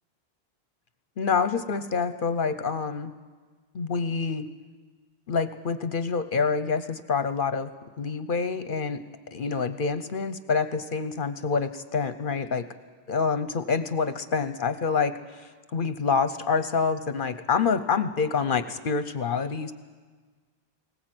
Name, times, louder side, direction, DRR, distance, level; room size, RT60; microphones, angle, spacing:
voice 1, 1.2-3.1 3.7-4.5 5.3-7.7 8.0-9.0 9.3-12.6 13.1-19.7, left 5 dB, 60° left, 12 dB, 0.9 m, -27 dB
20.5 x 19.0 x 7.8 m, 1.4 s
omnidirectional pair, 1.1 m